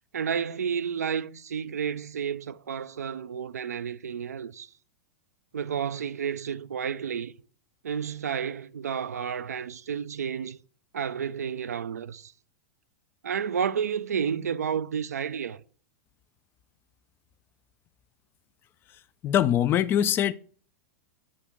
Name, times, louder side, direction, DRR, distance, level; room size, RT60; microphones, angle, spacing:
voice 1, 0.1-4.7 5.5-7.3 7.8-10.6 10.9-12.3 13.2-15.6, right 7 dB, 70° right, 0.4 m, -31 dB
voice 2, 19.2-20.3, left 10 dB, 25° left, 0.4 m, -22 dB
6.4 x 5.0 x 5.7 m
figure-of-eight pair, 95°, 9 cm